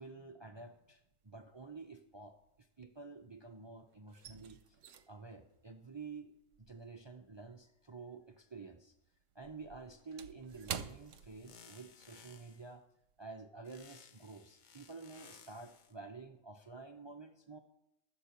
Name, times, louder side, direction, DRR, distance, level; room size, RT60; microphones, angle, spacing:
voice 1, 0.0-4.8 5.1-6.3 6.6-8.9 9.3-12.8 13.2-17.6, right 4 dB, 45° right, 5 dB, 0.3 m, -50 dB
sound 1, 0.7-1.2 1.5-3.5 3.8-8.4 8.7-12.0 12.3-12.5 13.0-13.3, right 8 dB, 70° right, 1.0 m, -49 dB
sound 2, 10.5-12.7 13.6-15.9, left 6 dB, 50° left, 0.6 m, -60 dB
12.0 x 7.8 x 5.6 m, 0.82 s
omnidirectional pair, 1.5 m